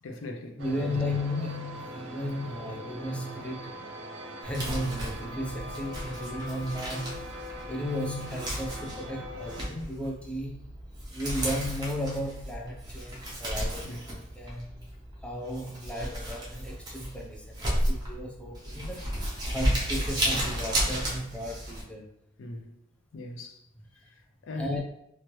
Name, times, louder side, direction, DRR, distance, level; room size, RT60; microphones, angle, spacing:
voice 1, 0.0-1.0 13.8-14.0 22.4-22.7 23.1-23.6 24.4-24.8, left 2 dB, 75° left, 0.4 m, -39 dB
voice 2, 0.6-3.8 4.4-7.3 7.7-10.7 11.1-13.9 14.3-14.8 15.2-19.1 19.5-22.1 24.6-24.8, left 1 dB, 5° left, 0.4 m, -34 dB
sound 1, 0.6-9.7, equal, 75° right, 0.5 m, -41 dB
Crumpling crinkling, 4.4-21.8, equal, 20° right, 0.9 m, -33 dB
3.0 x 2.5 x 3.0 m
head